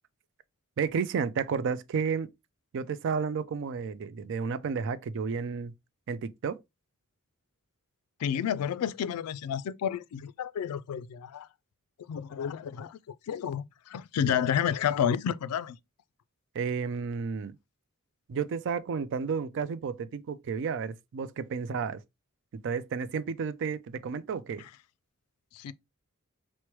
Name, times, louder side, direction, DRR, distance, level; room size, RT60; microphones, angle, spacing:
voice 1, 0.8-2.3 2.7-5.7 6.1-6.6 16.5-17.6 18.3-22.0 22.6-24.6, right 6 dB, 55° right, 0.3 m, -32 dB
voice 2, 8.2-11.5 12.1-15.8 25.5-25.7, left 8 dB, 90° left, 0.3 m, -30 dB
4.4 x 2.1 x 3.0 m
head